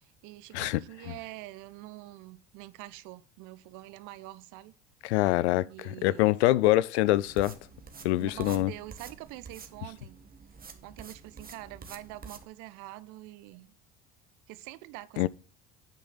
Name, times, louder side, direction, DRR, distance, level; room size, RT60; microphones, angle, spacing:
voice 1, 0.0-4.7 5.7-6.3 8.2-10.2 10.8-13.7 14.5-15.3, right 17 dB, 65° right, 0.7 m, -45 dB
voice 2, 0.5-1.1 5.0-7.5 8.0-8.7 15.2-15.3, left 16 dB, 85° left, 0.5 m, -25 dB
sound 1, 7.1-12.5, right 5 dB, 25° right, 1.5 m, -48 dB
9.2 x 5.1 x 4.0 m
hypercardioid pair, 75°, 33 cm